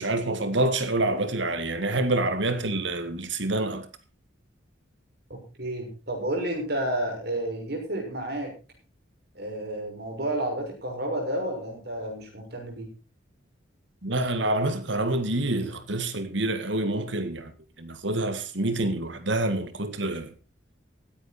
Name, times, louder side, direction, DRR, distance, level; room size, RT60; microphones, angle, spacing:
voice 1, 0.0-3.9 14.0-17.5 17.8-20.3, right 2 dB, 75° right, 2.0 m, -27 dB
voice 2, 5.3-8.5 9.3-12.9, right 1 dB, 55° right, 6.3 m, -31 dB
16.0 x 10.5 x 4.4 m
head